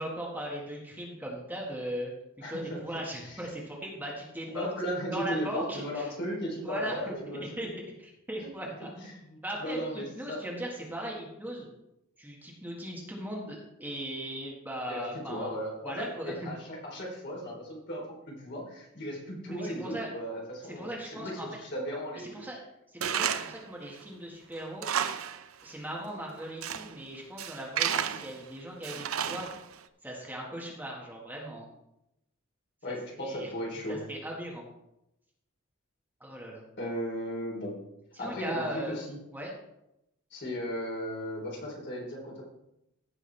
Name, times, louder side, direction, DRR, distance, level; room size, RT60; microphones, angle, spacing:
voice 1, 0.0-2.1 2.5-4.7 5.1-6.1 6.6-7.1 7.6-7.7 8.0-8.9 9.4-11.7 12.2-15.5 15.8-16.5 19.4-20.1 20.7-21.5 22.3-22.6 22.9-24.9 25.6-29.5 30.0-31.7 32.9-33.5 33.9-34.6 36.2-36.6 38.2-39.0 39.3-39.5, right 1 dB, 10° right, -2 dB, 1.7 m, -38 dB
voice 2, 2.4-2.8 3.2-3.4 4.5-7.4 8.4-8.5 9.0-10.4 14.9-22.3 32.8-34.0 36.8-37.8 38.2-39.2 40.3-42.4, equal, 55° left, -2 dB, 3.5 m, -36 dB
Tools, 23.0-23.6 24.0-24.1 24.6-25.4 25.7-25.8 26.4-26.9 27.4-28.4 28.8-29.7, right 8 dB, 75° right, 0.6 m, -31 dB
15.5 x 6.3 x 3.4 m, 0.86 s
head